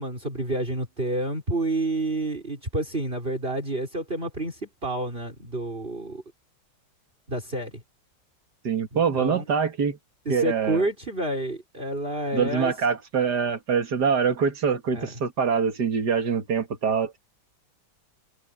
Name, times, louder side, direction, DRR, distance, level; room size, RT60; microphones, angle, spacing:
voice 1, 0.0-6.2 7.3-7.8 8.9-9.4 10.3-12.7 14.9-15.1, right 1 dB, 30° right, 5.9 m, -29 dB
voice 2, 8.6-10.0 10.3-10.9 12.3-17.2, right 6 dB, 65° right, 2.5 m, -24 dB
omnidirectional pair, 2.0 m